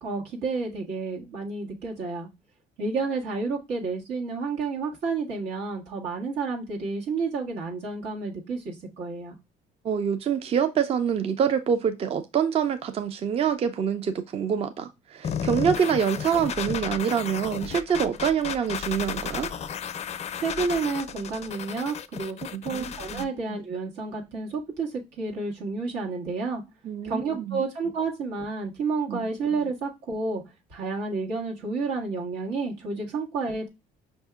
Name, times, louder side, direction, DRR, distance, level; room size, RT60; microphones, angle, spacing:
voice 1, 0.0-2.3 2.8-9.3 20.3-26.6 27.0-30.4 30.7-33.7, right 4 dB, 90° right, 1.6 m, -30 dB
voice 2, 9.8-19.5 22.5-23.3 26.8-27.6 29.1-29.3, right 8 dB, 35° right, 0.4 m, -26 dB
sound 1, 15.2-23.2, left 8 dB, 40° left, 0.4 m, -33 dB
5.4 x 2.7 x 2.3 m
cardioid pair, 110°, 17 cm